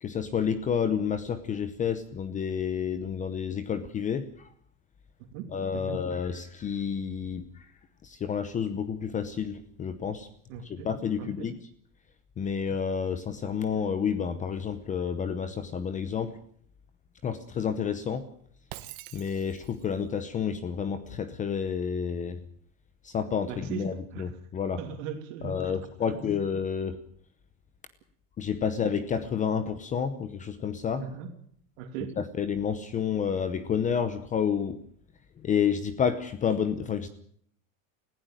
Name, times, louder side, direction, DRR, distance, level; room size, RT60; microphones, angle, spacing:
voice 1, 0.0-4.5 5.5-7.5 8.0-10.3 10.6-11.5 12.4-16.4 17.2-18.3 19.1-22.4 23.0-24.8 25.4-27.0 28.4-31.0 32.2-34.8 35.4-37.1, left 7 dB, 20° left, 12 dB, 0.8 m, -30 dB
voice 2, 5.3-6.0 10.5-10.9 11.2-11.5 23.5-24.3 24.8-26.3 31.0-31.3 31.8-32.2, right 8 dB, 65° right, 5 dB, 2.9 m, -39 dB
Shatter, 18.7-19.9, right 16 dB, 85° right, 1.5 m, -45 dB
20.0 x 16.0 x 9.0 m, 0.63 s
supercardioid pair, 170°, 42 cm